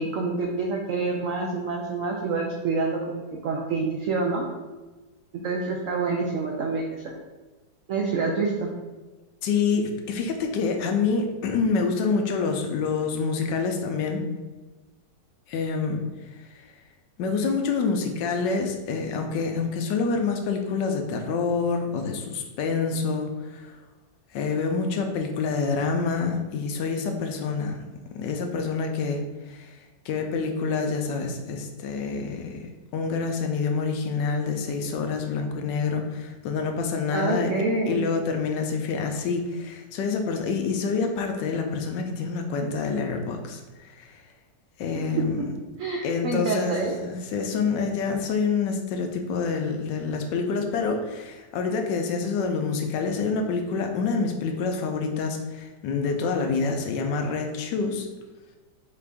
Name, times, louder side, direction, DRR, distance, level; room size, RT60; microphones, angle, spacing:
voice 1, 0.0-4.4 5.3-7.1 7.9-8.7 37.1-38.0 45.4-45.5 45.8-47.0, right 3 dB, 90° right, 0 dB, 0.7 m, -27 dB
voice 2, 9.4-14.2 15.5-16.0 16.4-16.7 17.2-23.8 24.3-27.8 28.1-29.8 30.0-32.7 32.9-37.5 37.9-44.2 44.8-45.5 46.0-58.1, left 5 dB, 80° left, 4 dB, 1.2 m, -27 dB
4.5 x 2.5 x 3.4 m, 1.2 s
omnidirectional pair, 1.9 m